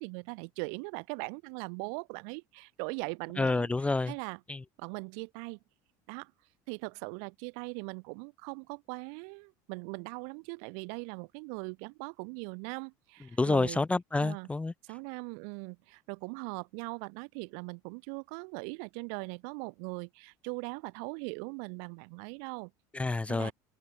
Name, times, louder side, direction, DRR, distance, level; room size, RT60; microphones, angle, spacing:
voice 1, 0.0-3.7 4.1-4.4 4.8-5.6 6.1-6.3 6.7-13.8 14.1-14.5 14.9-22.7 23.3-23.5, right 40 dB or more, 75° right, 2.3 m, -40 dB
voice 2, 3.4-4.1 4.5-4.6 13.4-14.7 22.9-23.5, left 3 dB, 10° left, 0.5 m, -28 dB
open air
supercardioid pair, 100°, 10 cm